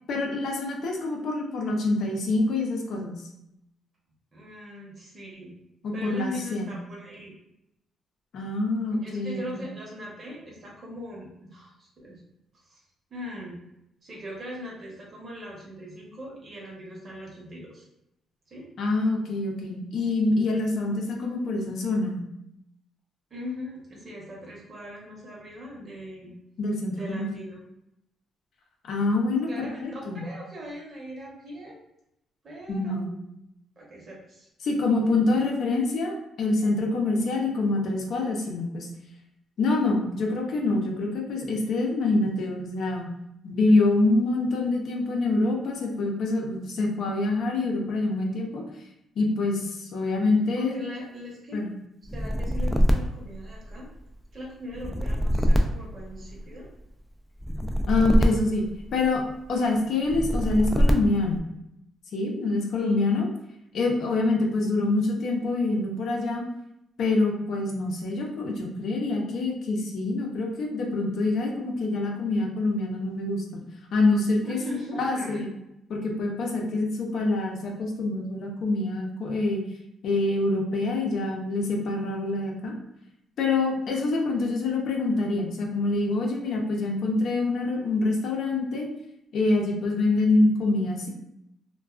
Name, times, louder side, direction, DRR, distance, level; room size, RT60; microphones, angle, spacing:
voice 1, 0.1-3.2 5.8-6.7 8.3-9.7 18.8-22.2 26.6-27.3 28.8-30.2 32.7-33.1 34.6-38.9 39.6-43.1 43.4-48.6 49.2-50.8 51.5-51.7 57.9-58.6 58.9-59.2 59.5-61.4 62.1-63.3 63.7-66.4 67.0-73.6 73.9-74.6 75.0-75.5 75.9-79.6 80.0-82.7 83.4-88.9 89.3-91.1, left 2 dB, 65° left, 0 dB, 0.6 m, -26 dB
voice 2, 4.3-5.5 5.9-7.3 8.9-12.2 12.5-12.8 13.1-13.6 14.0-17.9 18.5-18.7 23.3-26.3 26.9-27.6 29.5-31.8 32.4-33.1 33.8-34.5 50.6-51.6 52.1-53.9 54.3-56.7 62.8-63.2 64.1-64.2 74.4-75.5, left 1 dB, 45° right, -3 dB, 0.9 m, -39 dB
sound 1, 52.0-54.0 54.7-56.7 57.4-59.3 60.0-61.4, equal, 5° left, 0.3 m, -24 dB
2.4 x 2.2 x 2.3 m, 0.84 s
cardioid pair, 90°, 0 cm